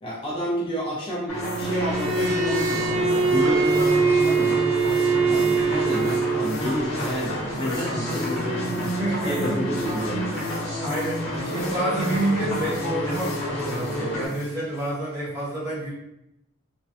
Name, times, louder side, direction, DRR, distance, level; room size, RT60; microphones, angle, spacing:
voice 1, 0.0-4.7 5.2-8.9 9.2-10.5, equal, 25° left, -6 dB, 0.4 m, -30 dB
sound 1, 1.3-14.9, left 3 dB, 90° left, 0.4 m, -41 dB
sound 2, 1.3-14.3, equal, 65° left, 1.0 m, -29 dB
Bowed string instrument, 1.7-6.6, right 4 dB, 65° right, 0.3 m, -23 dB
voice 2, 9.0-9.6 10.8-15.9, right 1 dB, 10° right, -10 dB, 0.9 m, -28 dB
2.6 x 2.1 x 2.4 m, 0.84 s
head